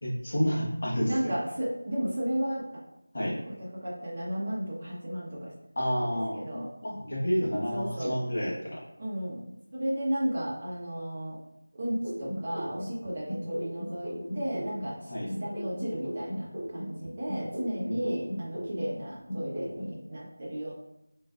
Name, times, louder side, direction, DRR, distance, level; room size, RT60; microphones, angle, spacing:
voice 1, 0.0-1.3 3.1-3.4 5.8-8.8 15.1-15.3 17.8-18.0, equal, 40° left, -5 dB, 1.0 m, -30 dB
voice 2, 1.0-2.8 3.5-5.5 6.0-6.7 7.7-8.1 9.0-9.4 9.7-11.4 11.8-15.1 15.4-20.7, equal, 25° right, -7 dB, 0.8 m, -34 dB
sound 1, 12.0-15.0 15.3-19.0 19.3-20.0, equal, 15° left, 1.2 m, -37 dB
3.5 x 2.5 x 2.3 m, 0.87 s
figure-of-eight pair, 175°, 0 cm